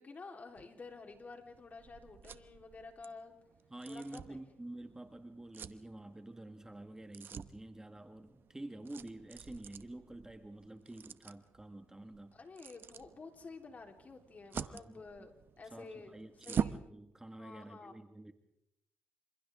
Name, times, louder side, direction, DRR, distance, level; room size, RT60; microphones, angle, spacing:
voice 1, 0.0-3.3 3.9-4.4 12.3-16.8 17.4-18.0, left 4 dB, 40° left, 4 dB, 3.7 m, -51 dB
sound 1, 0.6-16.9, right 7 dB, 60° right, 0.9 m, -46 dB
voice 2, 3.7-12.3 14.5-15.3 15.7-18.3, right 1 dB, 15° right, 7 dB, 1.7 m, -49 dB
28.0 x 26.5 x 3.6 m, 0.83 s
cardioid pair, 70°, 4 cm